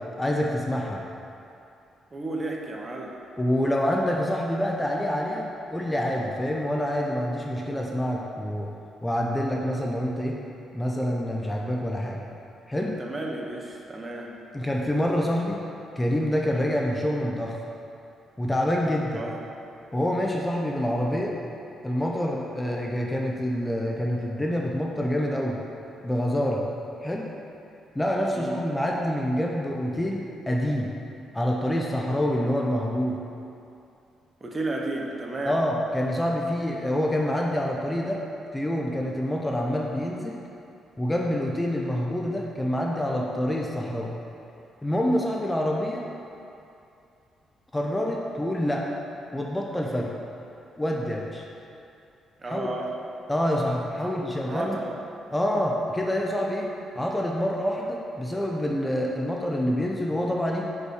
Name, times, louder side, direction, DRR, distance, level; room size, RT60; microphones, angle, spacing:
voice 1, 0.2-1.1 3.4-8.7 9.0-10.4 10.7-12.2 12.7-13.0 14.5-15.6 16.0-17.6 18.4-19.2 19.9-21.4 21.8-25.6 26.0-26.6 27.0-27.3 27.9-30.9 31.3-33.2 35.4-38.2 38.5-40.4 41.0-44.1 44.8-46.0 47.7-48.9 49.3-50.1 50.8-51.4 52.5-52.7 53.3-54.8 55.3-56.7 56.9-60.7, equal, 10° left, -1 dB, 0.7 m, -26 dB
voice 2, 2.1-3.1 13.0-14.3 19.1-19.4 28.3-28.6 34.4-35.6 52.4-52.9 54.0-54.9, right 2 dB, 25° right, -1 dB, 1.0 m, -33 dB
6.0 x 5.5 x 4.9 m, 2.6 s
cardioid pair, 90°, 0 cm